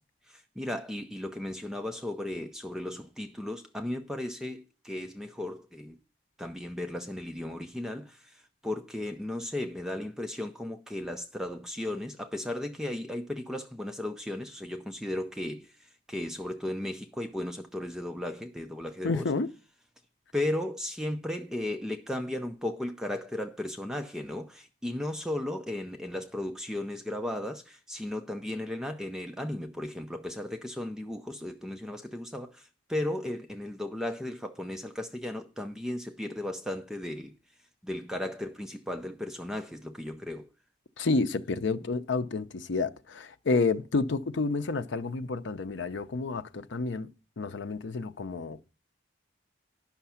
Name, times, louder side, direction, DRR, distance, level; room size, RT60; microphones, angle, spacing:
voice 1, 0.3-6.0 6.4-19.3 20.3-37.3 37.8-40.5, left 1 dB, 5° right, 0.5 m, -35 dB
voice 2, 19.0-19.5 41.0-47.1 47.4-48.6, left 3 dB, 70° left, 0.6 m, -30 dB
10.5 x 5.9 x 5.6 m
head